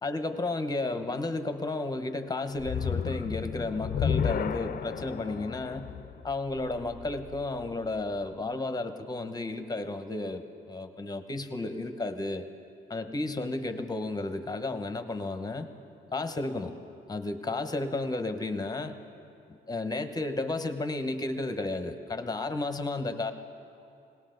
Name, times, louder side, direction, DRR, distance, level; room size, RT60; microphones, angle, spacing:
voice 1, 0.0-5.9 6.2-12.4 12.9-15.7 16.1-16.7 17.1-19.0 19.7-23.3, left 2 dB, 20° left, 8 dB, 1.0 m, -33 dB
sound 1, 2.5-7.8, left 7 dB, 45° left, 0.6 m, -33 dB
20.0 x 18.0 x 3.9 m, 2.6 s
cardioid pair, 90°, 20 cm